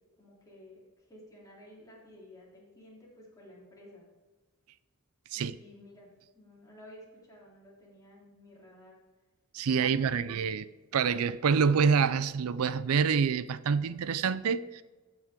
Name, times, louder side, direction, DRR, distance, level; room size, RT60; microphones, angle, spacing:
voice 1, 0.2-4.1 5.3-8.9 9.7-10.4, left 1 dB, 15° left, 3.3 m, -53 dB
voice 2, 9.5-10.6 10.9-14.8, right 6 dB, 70° right, 0.4 m, -27 dB
14.0 x 6.1 x 3.7 m
head